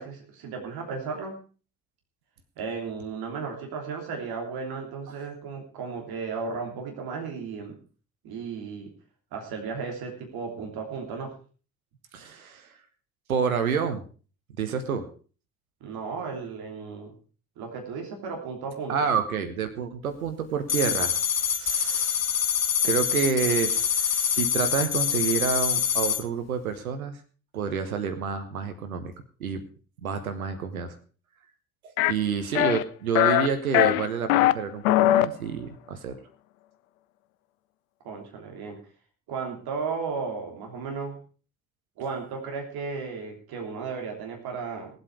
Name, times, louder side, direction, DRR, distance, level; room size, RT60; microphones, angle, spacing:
voice 1, 0.0-1.3 2.6-7.8 8.2-8.9 9.3-11.3 15.8-17.1 17.6-19.1 38.0-38.8 39.3-41.2 42.0-44.9, right 5 dB, 60° right, 2 dB, 3.3 m, -34 dB
voice 2, 12.1-12.7 13.3-14.0 14.6-15.1 18.9-21.1 21.4-22.3 22.8-27.2 27.5-29.1 29.4-29.6 30.0-30.9 31.8-36.2, right 7 dB, 80° right, 8 dB, 1.2 m, -29 dB
sound 1, 20.7-26.2, left 8 dB, 35° left, 1.4 m, -25 dB
sound 2, 32.0-32.1 32.6-32.8 33.2-33.5 33.7-34.5 34.8-35.3, left 15 dB, 75° left, 0.6 m, -20 dB
18.0 x 8.0 x 4.8 m, 0.38 s
figure-of-eight pair, 45°, 42 cm